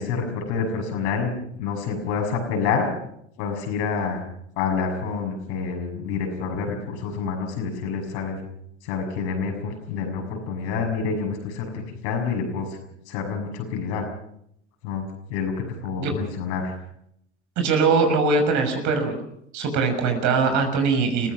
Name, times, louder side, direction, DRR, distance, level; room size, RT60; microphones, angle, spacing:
voice 1, 0.0-1.3 1.6-2.9 3.4-4.2 4.6-8.4 8.8-12.8 13.1-14.0 14.8-16.8, left 5 dB, 65° left, 3 dB, 6.6 m, -28 dB
voice 2, 17.6-19.2 19.5-21.3, right 4 dB, 50° right, 5 dB, 6.2 m, -21 dB
30.0 x 16.0 x 6.2 m, 0.73 s
hypercardioid pair, 80°, 36 cm